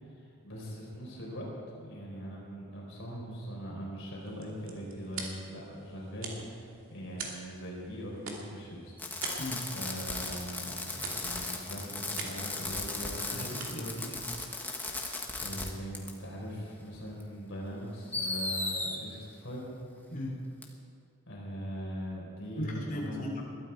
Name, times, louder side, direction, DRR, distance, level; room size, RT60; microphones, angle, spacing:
voice 1, 0.0-1.5 1.8-8.9 9.7-13.5 15.2-19.7 21.3-23.2, equal, 60° left, -3 dB, 4.2 m, -41 dB
sound 1, 4.1-15.3, right 4 dB, 65° right, 2.5 m, -46 dB
Fireworks, 9.0-15.7 15.9-16.1 17.2-17.3 18.1-19.0 20.6-20.7, left 2 dB, 10° left, 1.4 m, -36 dB
voice 2, 13.3-14.3 20.1-20.3 22.5-23.4, left 1 dB, 40° left, -3 dB, 3.3 m, -37 dB
21.0 x 12.5 x 4.6 m, 2.4 s
head